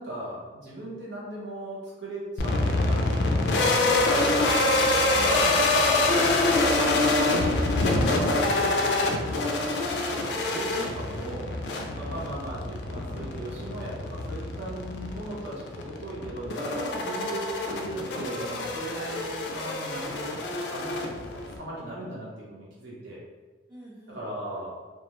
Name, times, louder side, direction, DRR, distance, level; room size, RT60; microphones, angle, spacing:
voice 1, 0.0-3.1 3.4-4.5 5.1-6.4 6.7-9.7 10.5-11.5 12.0-20.4 20.7-21.0 21.3-23.2 24.1-24.8, right 1 dB, 80° right, -6 dB, 0.8 m, -38 dB
sound 1, 2.4-21.6, left 2 dB, 70° left, 0.3 m, -26 dB
voice 2, 4.1-5.3 9.6-10.0 23.7-24.2, equal, 5° right, -9 dB, 0.4 m, -46 dB
2.4 x 2.0 x 3.0 m, 1.3 s
head